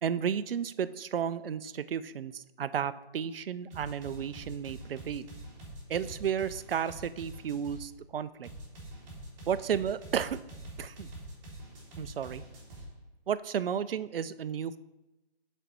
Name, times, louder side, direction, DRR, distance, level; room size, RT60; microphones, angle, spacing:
voice 1, 0.0-5.3 5.9-8.5 9.5-10.4 10.8-11.1 12.0-12.4 13.3-14.8, right 8 dB, 60° right, 14 dB, 0.4 m, -33 dB
sound 1, 3.7-7.8 8.4-12.9, right 1 dB, 15° right, 1.9 m, -45 dB
6.6 x 4.2 x 4.5 m, 1.0 s
hypercardioid pair, 155°, 33 cm